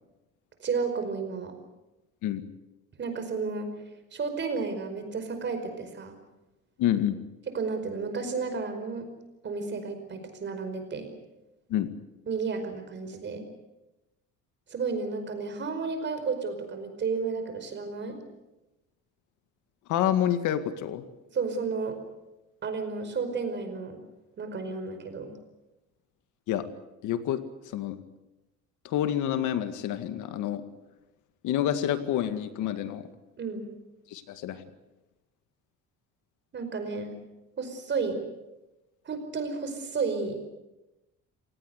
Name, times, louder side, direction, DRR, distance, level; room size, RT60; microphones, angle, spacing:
voice 1, 0.6-1.5 3.0-3.7 4.1-6.1 7.5-9.1 9.4-11.1 12.3-13.5 14.7-18.2 21.3-22.0 22.6-24.0 24.4-25.4 33.4-33.7 36.5-37.2 37.6-38.2 39.1-40.4, right 4 dB, 35° right, 7 dB, 5.2 m, -32 dB
voice 2, 6.8-7.2 11.7-11.9 19.9-21.0 26.5-26.6 27.0-28.0 28.8-30.6 31.4-33.1 34.1-34.6, left 11 dB, 70° left, 10 dB, 2.1 m, -28 dB
28.0 x 18.0 x 8.2 m, 0.98 s
cardioid pair, 135°, 31 cm